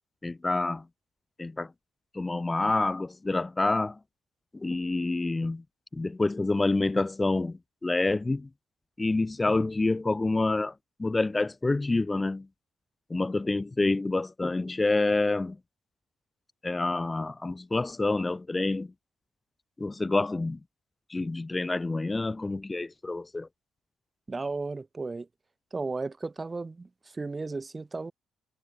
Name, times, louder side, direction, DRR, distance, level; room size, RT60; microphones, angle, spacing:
voice 1, 0.2-0.8 1.4-1.7 2.1-4.0 4.5-5.6 5.9-8.5 9.0-10.7 11.0-12.5 13.1-15.6 16.6-18.9 19.8-20.6 21.1-23.5, left 2 dB, 20° left, 1.8 m, -27 dB
voice 2, 24.3-25.3 25.7-28.1, right 3 dB, 25° right, 2.0 m, -34 dB
cardioid pair, 90°, 0 cm